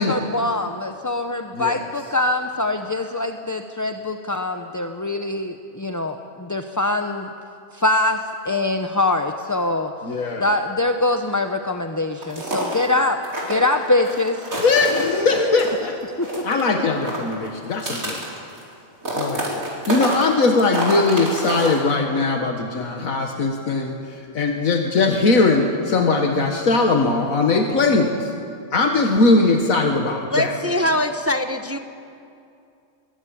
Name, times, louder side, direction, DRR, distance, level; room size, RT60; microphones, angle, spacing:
voice 1, 0.0-7.3 7.7-9.9 10.4-13.2 13.5-14.4 16.2-16.3, left 2 dB, 20° left, 5 dB, 0.6 m, -23 dB
voice 2, 1.5-1.8 10.0-10.5 14.5-18.2 19.2-28.3 28.7-30.5, left 3 dB, 80° left, 3 dB, 1.9 m, -20 dB
sound 1, 12.2-12.9 13.2-15.8 16.0-16.7 16.9-18.7 19.0-21.9, right 1 dB, 80° right, 4.8 m, -28 dB
voice 3, 30.3-31.8, left 1 dB, 10° right, 7 dB, 0.8 m, -22 dB
22.0 x 20.0 x 8.7 m, 2.5 s
omnidirectional pair, 1.4 m